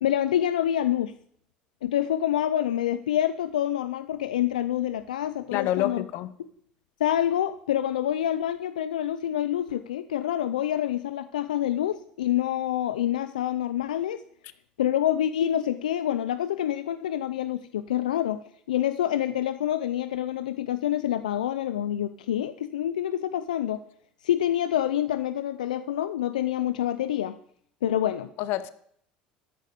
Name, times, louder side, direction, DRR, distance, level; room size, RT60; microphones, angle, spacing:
voice 1, 0.0-1.1 1.8-6.0 7.0-14.2 14.8-18.4 18.7-23.8 24.2-27.3 27.8-28.3, left 11 dB, 90° left, 0.5 m, -27 dB
voice 2, 5.5-6.4 28.4-28.7, left 13 dB, 65° left, 0.9 m, -27 dB
13.5 x 10.5 x 5.3 m
hypercardioid pair, 75°, 4 cm